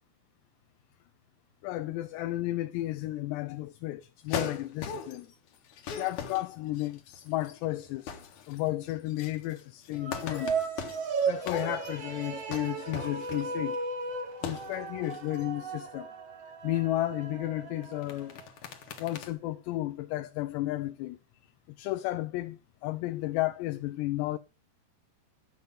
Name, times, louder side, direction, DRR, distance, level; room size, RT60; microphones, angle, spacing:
voice 1, 1.6-5.3 6.0-8.2 8.5-10.5 11.3-13.8 14.4-16.1 16.6-18.4 19.0-21.2 21.7-24.4, left 16 dB, 80° left, 2.8 m, -33 dB
sound 1, 4.3-5.3 5.7-7.6 7.9-8.6 8.9-13.8 14.3-14.8 15.0-15.4 17.8-19.3, left 6 dB, 60° left, 2.5 m, -40 dB
sound 2, 9.9-18.4, right 5 dB, 50° right, 1.9 m, -35 dB
12.0 x 7.1 x 5.4 m
omnidirectional pair, 5.1 m